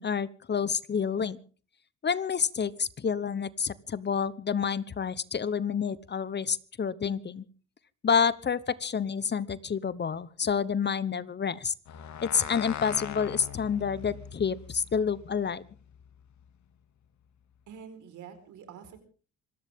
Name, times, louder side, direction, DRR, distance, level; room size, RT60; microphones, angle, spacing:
voice 1, 0.0-1.4 2.0-7.4 8.0-11.7 12.2-15.6, left 6 dB, 35° left, 18 dB, 0.9 m, -29 dB
sound 1, 11.9-16.5, left 9 dB, 70° left, 2.3 m, -42 dB
voice 2, 17.7-19.0, right 7 dB, 80° right, 9 dB, 4.5 m, -46 dB
26.0 x 15.0 x 3.6 m, 0.39 s
cardioid pair, 90°, 30 cm